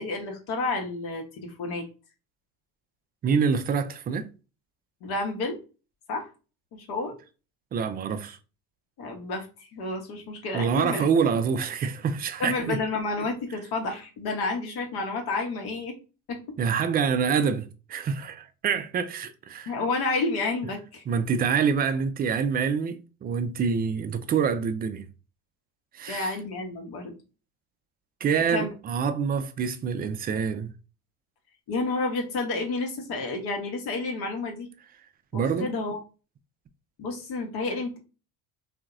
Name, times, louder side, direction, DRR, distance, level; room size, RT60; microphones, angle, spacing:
voice 1, 0.0-1.9 5.0-5.6 6.1-6.3 6.7-7.1 9.0-9.5 9.7-11.0 12.4-15.9 16.3-16.4 19.7-21.0 26.1-27.2 28.4-28.7 31.7-34.7 35.3-36.0 37.0-38.0, left 3 dB, 55° left, 1.0 m, -30 dB
voice 2, 3.2-4.3 7.7-8.4 10.5-12.8 16.6-19.7 21.1-25.1 25.9-26.4 28.2-30.7 35.3-35.8, right 6 dB, 25° right, 0.3 m, -26 dB
2.8 x 2.4 x 2.4 m
hypercardioid pair, 65°, 44 cm